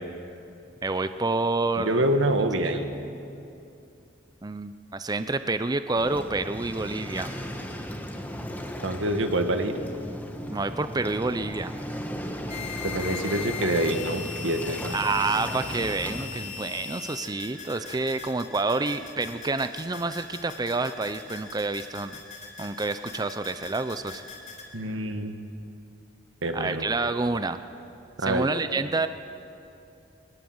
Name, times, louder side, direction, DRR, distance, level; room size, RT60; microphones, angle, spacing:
voice 1, 0.8-2.1 4.4-7.3 10.5-11.7 14.9-22.2 22.6-24.2 26.5-27.6 28.2-29.1, right 3 dB, 20° right, 11 dB, 0.5 m, -28 dB
voice 2, 1.8-2.9 8.8-9.7 12.8-14.9 24.7-25.3 26.4-26.8 28.2-28.5, right 1 dB, 90° right, 6 dB, 1.8 m, -26 dB
Waves surf, 6.0-16.2, equal, 10° left, 1.6 m, -36 dB
Digital Noises (glitch), 12.5-24.6, left 6 dB, 40° left, 4.0 m, -40 dB
22.0 x 20.0 x 8.0 m, 2.7 s
head